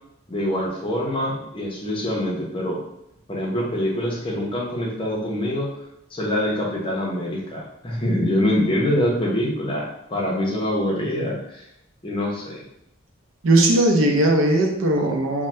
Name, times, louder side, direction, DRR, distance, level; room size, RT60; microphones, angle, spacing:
voice 1, 0.3-2.8 3.3-5.7 6.1-11.6 12.0-12.6, left 1 dB, 25° left, -4 dB, 0.6 m, -25 dB
voice 2, 13.4-15.5, right 1 dB, 75° right, 2 dB, 0.5 m, -18 dB
2.7 x 2.1 x 3.2 m, 0.80 s
head